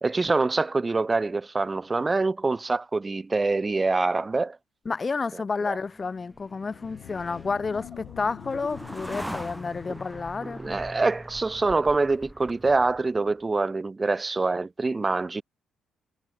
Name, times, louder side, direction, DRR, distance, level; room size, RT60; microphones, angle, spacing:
voice 1, 0.0-4.6 5.7-5.8 10.4-15.4, right 3 dB, 30° right, 0.9 m, -25 dB
voice 2, 4.9-10.8, left 4 dB, 35° left, 0.8 m, -30 dB
sound 1, 5.8-13.2, equal, ahead, 4.1 m, -42 dB
sound 2, 6.3-11.3, left 14 dB, 75° left, 2.5 m, -47 dB
hypercardioid pair, 50°, 0 cm